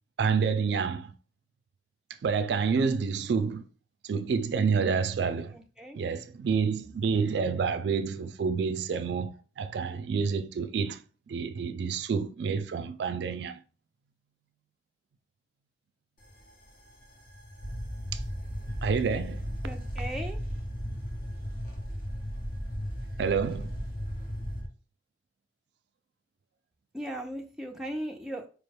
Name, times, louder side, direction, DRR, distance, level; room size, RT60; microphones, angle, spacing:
voice 1, 0.2-1.1 2.2-3.7 4.0-5.6 5.9-11.0 11.3-13.6 18.1-18.2 18.8-19.5 23.2-23.8, right 5 dB, 70° right, 0.3 m, -28 dB
voice 2, 5.5-6.0 19.6-20.4 26.9-28.5, right 1 dB, 5° right, 0.4 m, -37 dB
sound 1, 16.2-24.7, equal, 50° left, 1.0 m, -36 dB
4.6 x 2.2 x 3.2 m
head